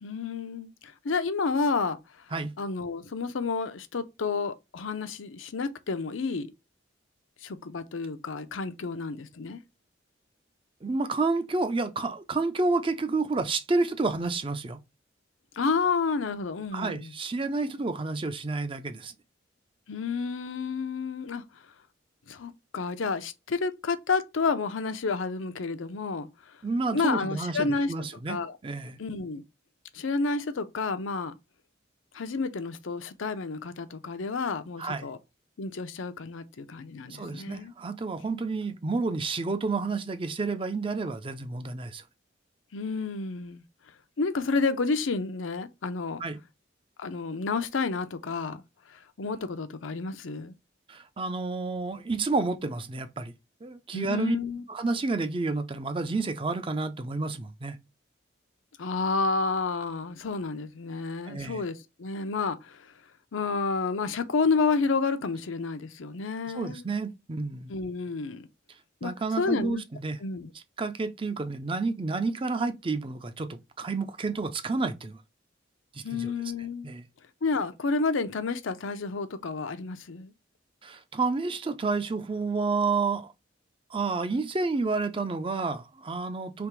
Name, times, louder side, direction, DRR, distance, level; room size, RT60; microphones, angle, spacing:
voice 1, 0.0-2.0 2.6-6.5 7.4-9.6 15.6-17.1 19.9-21.4 22.3-26.3 26.9-27.9 28.3-28.6 29.0-29.4 29.9-31.4 32.1-35.2 35.6-37.7 42.7-43.6 44.2-46.2 47.0-48.6 48.9-50.5 53.9-54.6 58.8-62.9 63.3-66.8 67.7-68.5 69.0-69.1 69.4-69.8 70.2-70.5 76.0-76.9 77.4-80.3, left 4 dB, 90° left, 0.6 m, -30 dB
voice 2, 10.8-14.8 16.7-19.1 26.6-29.0 34.8-35.1 37.1-42.0 46.2-46.4 50.9-53.3 53.6-54.4 54.7-57.8 61.3-61.6 66.5-67.7 69.0-70.2 70.5-75.2 75.9-76.3 76.8-77.0 80.8-83.3 83.9-86.7, right 3 dB, 25° right, 0.4 m, -30 dB
3.5 x 2.9 x 4.6 m
head